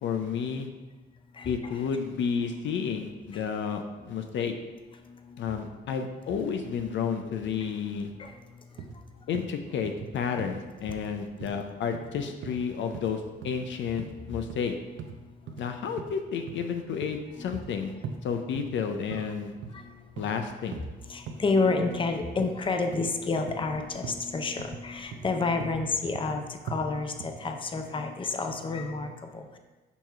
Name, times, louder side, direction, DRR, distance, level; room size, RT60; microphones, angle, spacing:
voice 1, 0.0-0.7 1.5-4.5 5.4-8.1 9.3-14.7 15.6-18.0 18.2-19.6 20.2-20.8, left 6 dB, 70° left, 6 dB, 0.6 m, -31 dB
sound 1, 8.8-9.0 9.3-9.5 9.8-10.1 10.4-10.5 10.9-11.0 11.4-11.6 11.9-12.1 12.4-12.6 12.9-13.1 13.4-13.6 14.0-14.1 14.5-14.6 15.0-15.2 15.5-15.6 16.0-16.2 16.5-16.6 17.0-17.7 18.0-18.2 18.6-18.8 19.1-19.3 19.6-19.8 20.2-20.3 20.7-20.9 21.3-21.4 21.8-22.0 22.4-22.5 22.9-23.1 23.5-23.7 24.0-24.2 24.6-24.8 25.1-25.3 25.6-25.8 26.1-26.4 26.7-26.8 27.2-27.4, right 6 dB, 75° right, 0.7 m, -40 dB
voice 2, 21.1-29.6, left 3 dB, 25° left, 5 dB, 0.6 m, -29 dB
7.0 x 3.0 x 5.5 m, 1.3 s
cardioid pair, 90°, 20 cm